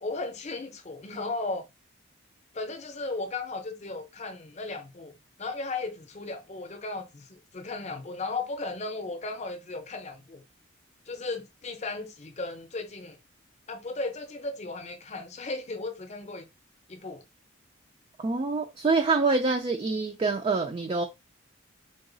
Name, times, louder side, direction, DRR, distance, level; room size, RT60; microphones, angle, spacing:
voice 1, 0.0-1.6 2.5-10.4 11.1-13.2 13.7-16.5 16.9-17.2, left 3 dB, 35° left, 0.6 m, -36 dB
voice 2, 18.2-21.0, right 3 dB, 30° right, 0.3 m, -26 dB
3.8 x 2.3 x 3.8 m
head